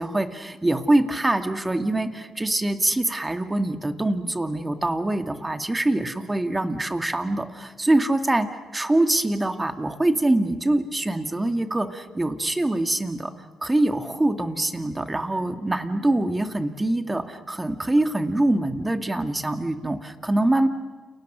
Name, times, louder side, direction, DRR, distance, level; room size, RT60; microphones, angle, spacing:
voice 1, 0.0-8.5 8.7-13.3 13.6-20.7, right 1 dB, 15° right, 8 dB, 2.3 m, -24 dB
30.0 x 28.5 x 6.3 m, 1.4 s
cardioid pair, 90°, 0 cm